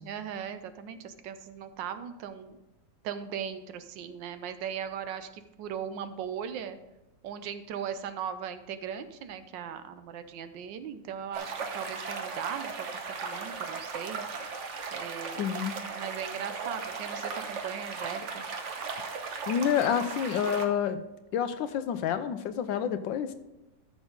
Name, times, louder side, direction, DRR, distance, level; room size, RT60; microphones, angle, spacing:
voice 1, 0.0-2.6 3.0-6.8 7.2-14.2 14.9-15.5 15.9-18.5, right 8 dB, 75° right, 11 dB, 1.4 m, -38 dB
sound 1, 11.3-20.7, right 5 dB, 50° right, 1.0 m, -37 dB
voice 2, 15.4-15.8 19.5-21.0 21.3-23.3, left 8 dB, 80° left, 10 dB, 1.4 m, -28 dB
13.5 x 6.3 x 3.8 m, 1.0 s
omnidirectional pair, 2.0 m